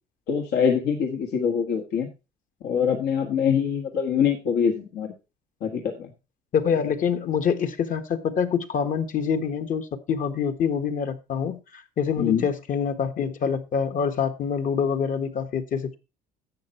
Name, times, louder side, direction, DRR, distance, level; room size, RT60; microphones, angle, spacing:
voice 1, 0.3-2.1 2.6-5.1 5.6-6.1 12.2-12.5, left 7 dB, 80° left, 1.7 m, -24 dB
voice 2, 6.5-16.0, left 7 dB, 50° left, 1.3 m, -26 dB
11.5 x 8.1 x 4.3 m
cardioid pair, 110°, 17 cm